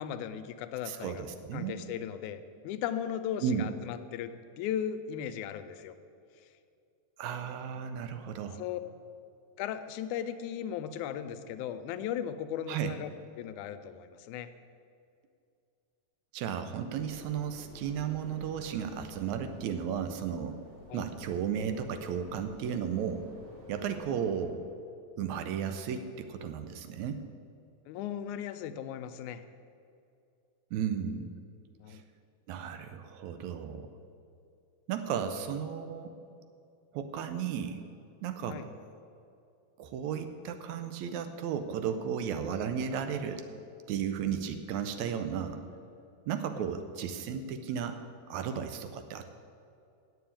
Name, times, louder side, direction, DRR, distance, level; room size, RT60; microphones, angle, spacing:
voice 1, 0.0-1.2 1.5-6.0 8.6-8.8 9.6-13.1 13.4-14.5 20.9-21.0 27.9-29.4 31.8-32.0 38.5-38.7, left 9 dB, 85° left, 10 dB, 2.0 m, -37 dB
voice 2, 0.9-1.8 3.4-3.7 7.2-8.6 12.7-13.0 16.3-20.6 20.9-23.3 23.7-24.6 25.2-27.2 30.7-31.3 31.9-32.0 32.5-33.9 34.9-36.2 36.9-37.8 38.2-38.6 39.8-43.5 43.9-45.6 46.3-48.0 48.3-49.3, right 8 dB, 80° right, 8 dB, 1.9 m, -34 dB
sound 1, 16.9-24.4, left 1 dB, 40° right, 2.2 m, -52 dB
8.4 x 7.5 x 8.6 m, 2.5 s
omnidirectional pair, 3.5 m